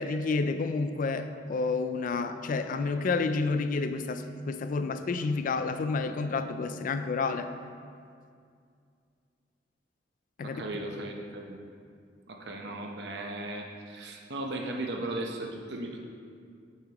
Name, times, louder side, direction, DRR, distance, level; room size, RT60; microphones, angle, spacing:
voice 1, 0.0-7.5 10.4-10.8, left 4 dB, 50° left, 9 dB, 0.4 m, -30 dB
voice 2, 10.4-11.6 12.3-16.0, right 2 dB, 70° right, 2 dB, 0.9 m, -36 dB
8.5 x 7.3 x 3.0 m, 2.3 s
head